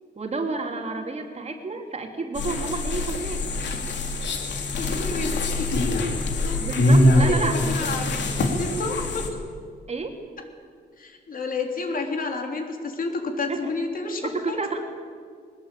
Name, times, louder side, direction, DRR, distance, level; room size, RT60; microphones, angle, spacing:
voice 1, 0.2-3.4 6.6-7.9 9.9-10.2 13.5-13.7 14.1-14.8, right 3 dB, 35° right, 3 dB, 2.7 m, -30 dB
sound 1, 2.4-9.3, left 1 dB, 85° left, 3.3 m, -23 dB
voice 2, 4.8-5.8 6.4-6.6 7.2-9.2 11.0-14.6, left 3 dB, 50° left, 3 dB, 3.6 m, -30 dB
21.5 x 20.0 x 8.8 m, 2.1 s
wide cardioid pair, 155°, 18 cm